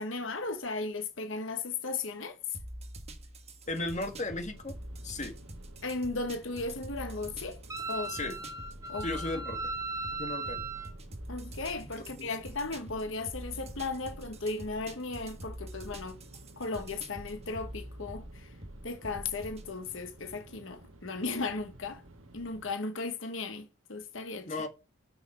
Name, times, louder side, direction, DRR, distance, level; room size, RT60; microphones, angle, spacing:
voice 1, 0.0-2.6 5.8-7.6 7.9-8.3 8.9-9.1 9.3-9.4 11.3-16.2 16.6-18.5 18.8-22.0 22.3-24.5, left 3 dB, 70° left, 1.3 m, -36 dB
sound 1, 2.5-19.7, right 1 dB, 30° right, 1.4 m, -46 dB
sound 2, 3.6-22.7, right 1 dB, 85° right, 1.8 m, -53 dB
voice 2, 3.7-4.7 5.0-5.4 8.1-8.4 9.0-9.7 10.2-10.7 12.2-12.3 24.4-24.7, left 2 dB, 35° left, 1.7 m, -35 dB
Wind instrument woodwind instrument, 7.7-10.9, right 3 dB, 15° right, 1.1 m, -37 dB
6.5 x 6.1 x 5.9 m
head